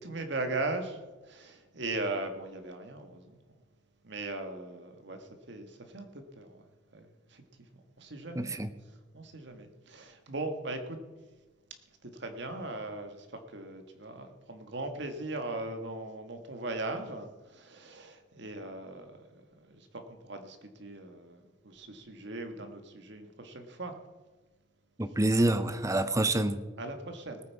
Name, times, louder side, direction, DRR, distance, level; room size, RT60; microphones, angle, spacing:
voice 1, 0.0-1.0 1.2-3.4 4.0-6.7 6.9-7.4 8.0-8.6 9.1-11.0 12.0-13.3 13.5-19.0 19.7-19.9 20.2-23.9 26.8-27.4, right 2 dB, 65° right, 6 dB, 1.7 m, -39 dB
voice 2, 8.3-8.7 25.0-26.6, right 1 dB, 15° right, 11 dB, 0.8 m, -27 dB
19.0 x 9.1 x 4.7 m, 1.2 s
head